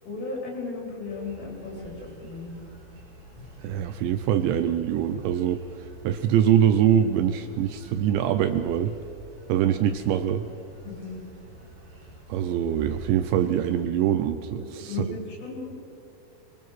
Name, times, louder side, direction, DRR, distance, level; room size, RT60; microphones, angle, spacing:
voice 1, 0.0-2.5 10.8-11.2 14.6-15.7, left 4 dB, 70° left, -1 dB, 7.5 m, -35 dB
sound 1, 1.1-13.8, equal, 35° right, 6.7 m, -48 dB
voice 2, 3.6-5.6 6.0-9.0 9.5-10.5 12.3-15.1, right 10 dB, 80° right, 10 dB, 2.7 m, -23 dB
23.5 x 23.5 x 6.1 m, 2.7 s
omnidirectional pair, 5.7 m